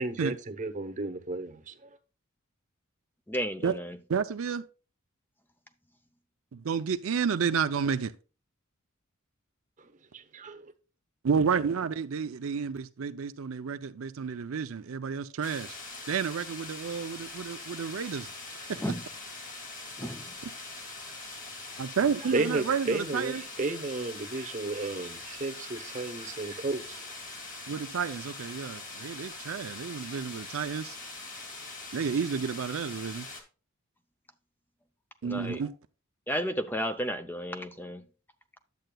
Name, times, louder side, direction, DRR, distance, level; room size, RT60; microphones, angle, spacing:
voice 1, 0.0-2.0 9.8-10.7 22.2-27.2, right 3 dB, 35° right, 0.9 m, -33 dB
voice 2, 3.3-4.0 18.8-19.0 20.0-20.2 35.3-35.6 36.3-38.0, equal, 10° left, 0.5 m, -32 dB
voice 3, 4.1-4.6 6.5-8.1 11.2-15.8 16.1-18.3 18.7-18.8 21.8-23.4 27.7-31.0 31.9-33.3 35.2-35.7, right 6 dB, 65° right, 0.5 m, -31 dB
sound 1, 15.4-33.4, left 3 dB, 40° left, 2.3 m, -43 dB
10.5 x 7.7 x 2.3 m
head